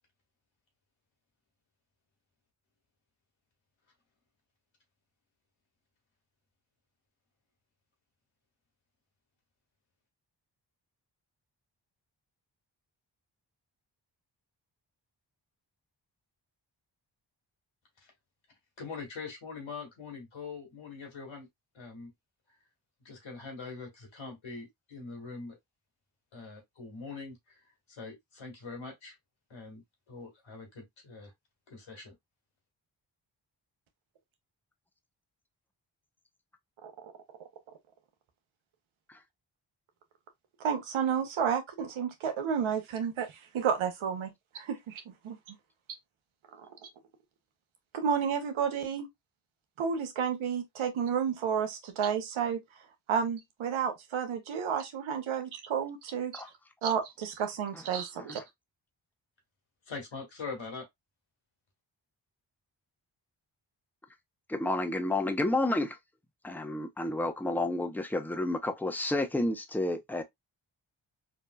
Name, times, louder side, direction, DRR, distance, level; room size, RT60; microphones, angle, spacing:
voice 1, 18.8-21.5 21.7-22.1 23.0-25.6 26.3-27.6 27.9-29.2 29.5-29.8 30.1-31.3 31.7-32.1 59.9-60.9, left 4 dB, 75° left, 2.2 m, -43 dB
voice 2, 40.6-45.6 46.6-46.7 47.9-49.1 49.8-52.6 53.1-56.4 56.8-58.4, right 7 dB, 90° right, 0.9 m, -31 dB
voice 3, 64.5-65.9 66.4-70.2, left 2 dB, 5° left, 0.7 m, -30 dB
4.0 x 2.6 x 2.3 m
cardioid pair, 45°, 47 cm